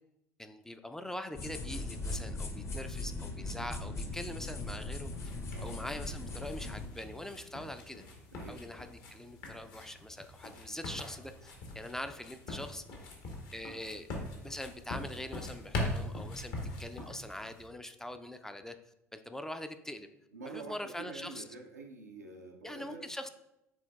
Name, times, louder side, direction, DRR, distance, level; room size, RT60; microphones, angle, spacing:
voice 1, 0.4-5.3 5.6-8.0 8.5-12.8 13.5-14.1 14.4-18.8 19.1-20.1 20.5-21.4 22.6-23.3, left 1 dB, 5° left, 8 dB, 0.4 m, -43 dB
sound 1, 1.3-6.9, left 2 dB, 35° left, 0.8 m, -39 dB
sound 2, 5.1-17.7, left 1 dB, 55° left, 1.2 m, -42 dB
voice 2, 8.3-8.7 20.3-23.1, right 3 dB, 90° right, 0 dB, 0.4 m, -47 dB
6.0 x 3.7 x 2.3 m, 0.87 s
figure-of-eight pair, 65°, 8 cm